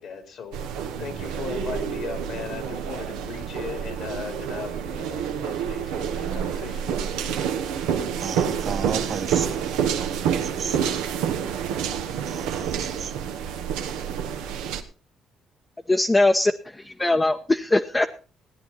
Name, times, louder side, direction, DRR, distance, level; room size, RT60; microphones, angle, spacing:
voice 1, 0.0-7.1, left 6 dB, 65° left, 2.8 m, -38 dB
sound 1, 0.5-14.8, right 8 dB, 85° right, 1.2 m, -28 dB
sound 2, 5.7-11.6, left 3 dB, 85° left, 6.8 m, -50 dB
voice 2, 8.2-11.0 12.3-13.1, right 6 dB, 55° right, 2.4 m, -34 dB
voice 3, 15.9-18.1, left 2 dB, 20° left, 0.9 m, -21 dB
17.0 x 9.8 x 4.2 m
supercardioid pair, 55°, 0 cm